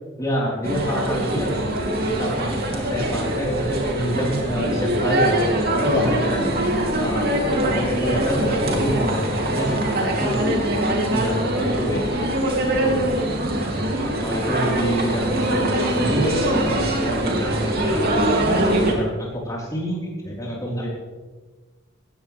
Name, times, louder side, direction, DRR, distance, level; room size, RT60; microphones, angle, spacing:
voice 1, 0.2-1.6 2.0-6.4 7.0-10.7 11.1-12.1 12.5-13.2 14.2-18.3 18.8-20.9, equal, 20° left, -4 dB, 4.2 m, -27 dB
sound 1, 0.6-18.9, right 1 dB, 55° right, 2.8 m, -23 dB
19.0 x 15.5 x 3.5 m, 1.3 s
head